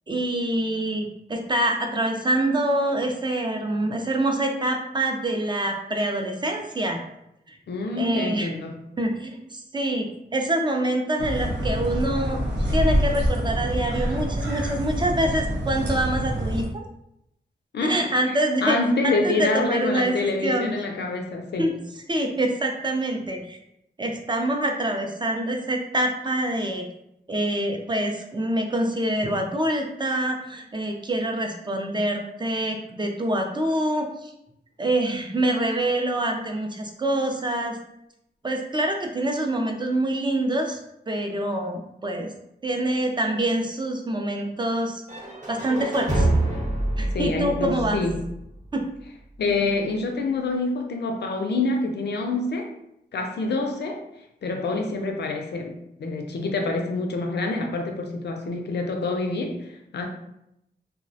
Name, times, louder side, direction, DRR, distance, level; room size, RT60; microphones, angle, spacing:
voice 1, 0.1-7.0 7.5-7.6 8.0-8.5 9.0-10.1 10.3-12.4 12.7-16.8 17.8-18.8 19.0-20.7 21.6-21.7 22.1-23.6 24.0-26.9 27.3-34.3 34.8-37.8 38.4-40.8 41.1-42.3 42.6-45.0 45.5-46.3 47.0-48.0 48.7-48.9, right 1 dB, 25° right, 2 dB, 0.3 m, -25 dB
voice 2, 7.7-8.8 17.7-18.0 18.3-18.4 18.6-21.8 47.1-48.2 49.4-52.7 53.1-54.0 54.4-59.6 59.9-60.1, left 3 dB, 75° left, 3 dB, 0.4 m, -26 dB
sound 1, 11.2-16.6, equal, 85° right, 0.5 m, -26 dB
sound 2, 45.1-49.0, right 2 dB, 40° right, 0.8 m, -27 dB
2.3 x 2.0 x 2.6 m, 0.82 s
wide cardioid pair, 85°, 18 cm